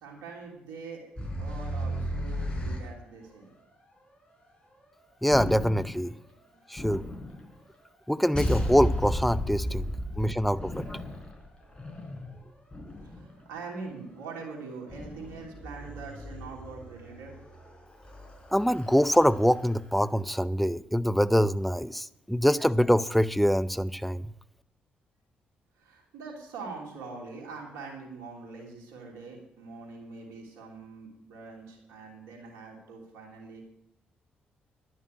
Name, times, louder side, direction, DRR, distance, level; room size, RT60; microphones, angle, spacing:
voice 1, 0.0-1.0 1.4-3.5 6.3-6.6 9.7-10.3 13.0-17.4 25.8-33.6, right 4 dB, 75° right, -1 dB, 3.1 m, -43 dB
sound 1, 1.2-2.9 5.3-6.1 6.8-7.6 8.3-13.5 14.9-19.8, equal, 20° left, 4.3 m, -35 dB
voice 2, 5.2-6.1 6.7-7.1 8.1-9.9 10.2-11.0 18.5-24.2, equal, ahead, 16 dB, 0.6 m, -24 dB
11.0 x 6.4 x 9.2 m, 0.80 s
hypercardioid pair, 40°, 5 cm